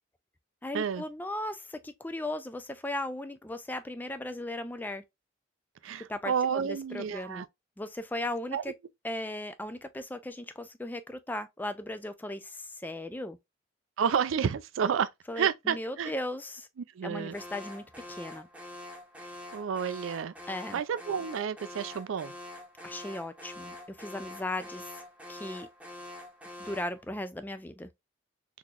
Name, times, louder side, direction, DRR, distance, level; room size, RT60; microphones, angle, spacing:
voice 1, 0.6-5.0 6.1-7.4 7.8-8.7 9.0-13.4 15.3-16.7 17.0-18.5 20.5-20.8 22.8-25.0 25.3-25.7 26.6-27.9, left 1 dB, 10° left, 0.3 m, -37 dB
voice 2, 5.8-7.5 8.5-8.6 14.0-15.1 15.4-16.1 16.8-17.3 19.5-20.3 20.7-22.3, right 7 dB, 85° right, 0.4 m, -30 dB
Alarm, 17.3-27.0, left 1 dB, 5° right, 0.7 m, -45 dB
3.8 x 2.9 x 2.4 m
head